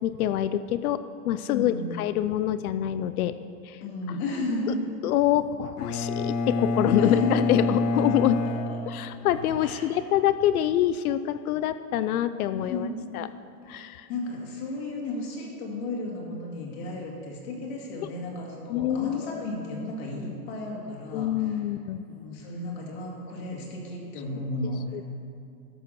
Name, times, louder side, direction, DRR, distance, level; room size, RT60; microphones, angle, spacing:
voice 1, 0.0-3.4 3.6-3.8 4.7-4.8 5.0-8.4 8.9-12.9 13.1-13.3 13.7-14.1 18.7-19.4 21.1-22.0 24.9-25.0, left 12 dB, 70° left, 13 dB, 0.5 m, -26 dB
voice 2, 1.5-2.0 3.8-4.8 7.0-7.6 8.4-8.8 9.6-9.9 12.5-13.1 14.1-21.6 22.1-24.8, left 2 dB, 45° left, -1 dB, 2.1 m, -33 dB
Bowed string instrument, 5.8-9.6, left 2 dB, 90° left, 0.9 m, -28 dB
13.0 x 5.9 x 6.3 m, 2.5 s
supercardioid pair, 175°, 45 cm